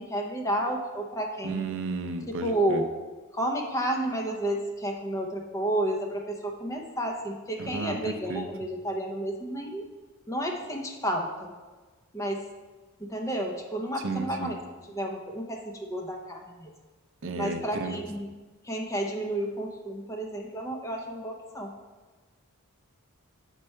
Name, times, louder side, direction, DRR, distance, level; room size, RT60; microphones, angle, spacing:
voice 1, 0.0-1.7 2.4-2.9 3.3-9.9 10.3-11.5 12.1-12.4 13.0-14.6 14.9-16.7 17.4-18.3 18.6-21.7, right 1 dB, 15° left, 1 dB, 0.6 m, -31 dB
voice 2, 1.4-2.8 7.6-8.5 14.0-14.6 17.2-18.0, right 3 dB, 60° right, 7 dB, 0.5 m, -33 dB
6.7 x 4.6 x 4.3 m, 1.3 s
head